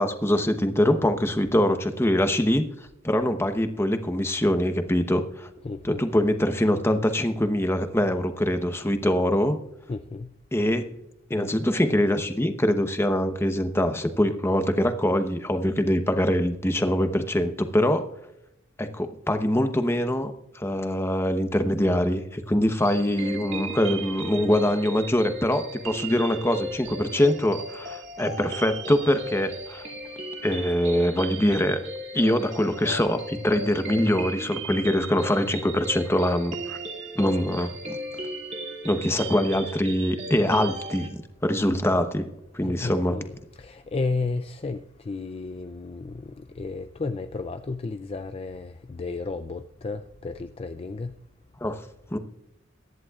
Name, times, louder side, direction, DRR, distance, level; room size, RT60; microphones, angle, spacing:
voice 1, 0.0-2.7 3.0-5.5 5.8-9.6 10.5-10.8 11.3-18.1 18.8-29.9 30.4-31.8 32.1-36.8 37.1-38.0 38.8-42.3 42.5-43.2 51.6-51.8 52.1-52.2, left 1 dB, 15° left, 0.9 m, -24 dB
voice 2, 5.6-6.0 9.9-10.3 42.6-51.2, left 3 dB, 30° left, 0.4 m, -33 dB
sound 1, 22.8-41.1, right 1 dB, 35° right, 2.3 m, -36 dB
22.5 x 10.5 x 2.4 m
head